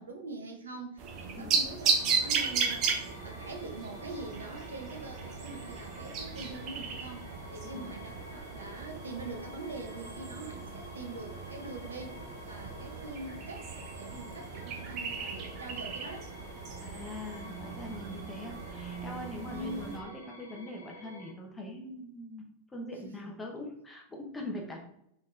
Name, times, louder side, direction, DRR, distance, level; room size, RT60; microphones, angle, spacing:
voice 1, 0.0-16.3 19.5-19.9 23.0-23.2, right 2 dB, 70° right, 2 dB, 0.7 m, -43 dB
sound 1, 1.0-20.0, right 5 dB, 35° right, 0.8 m, -36 dB
sound 2, 1.8-21.3, left 1 dB, 85° left, 0.7 m, -50 dB
voice 2, 16.8-24.8, left 1 dB, 15° left, 0 dB, 0.8 m, -42 dB
3.9 x 3.7 x 2.5 m, 0.76 s
figure-of-eight pair, 90°, 0 cm